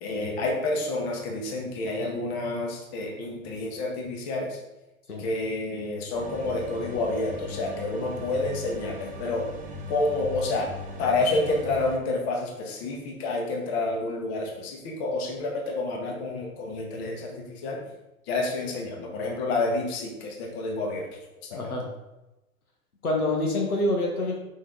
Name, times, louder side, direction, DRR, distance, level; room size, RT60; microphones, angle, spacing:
voice 1, 0.0-4.6 5.2-9.4 9.9-10.7 11.0-17.8 18.3-21.1 21.5-21.6, left 2 dB, 45° left, 1 dB, 1.6 m, -29 dB
sound 1, 6.1-12.0, left 1 dB, 20° right, 0.9 m, -39 dB
voice 2, 21.5-21.9 23.0-24.4, left 1 dB, 85° left, 0 dB, 1.4 m, -26 dB
5.8 x 5.5 x 3.8 m, 0.98 s
figure-of-eight pair, 105°, 43 cm